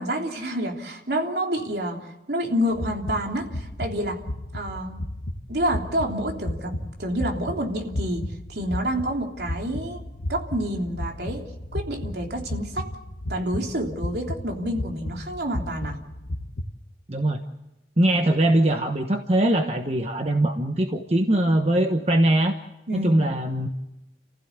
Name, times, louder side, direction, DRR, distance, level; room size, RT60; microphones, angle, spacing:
voice 1, 0.0-4.2 4.5-5.0 5.5-8.2 8.5-10.0 10.3-11.4 11.7-12.9 13.3-16.0 22.9-23.1, equal, 65° right, 2 dB, 3.2 m, -28 dB
sound 1, 2.7-16.7, left 1 dB, 85° left, 1.3 m, -34 dB
voice 2, 17.1-17.4 18.0-22.5 23.0-23.7, right 1 dB, 35° right, 5 dB, 1.1 m, -21 dB
29.5 x 15.5 x 8.1 m, 0.97 s
head